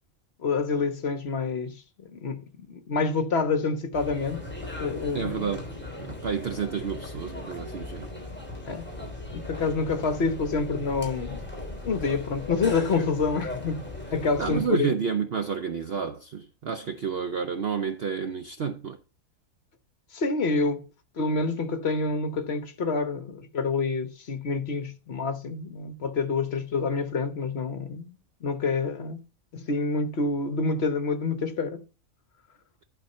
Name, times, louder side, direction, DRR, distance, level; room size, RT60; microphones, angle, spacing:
voice 1, 0.4-1.8 2.1-4.4 4.8-5.5 8.6-8.8 9.3-11.4 11.8-13.8 14.1-14.9 20.1-20.9 21.2-28.0 28.4-29.2 29.5-31.8, left 4 dB, 55° left, 1.1 m, -27 dB
sound 1, 3.9-14.6, left 2 dB, 5° left, 3.0 m, -38 dB
voice 2, 5.1-5.7 6.0-8.1 14.4-19.0, right 6 dB, 55° right, 0.8 m, -30 dB
11.5 x 4.4 x 5.4 m
omnidirectional pair, 1.4 m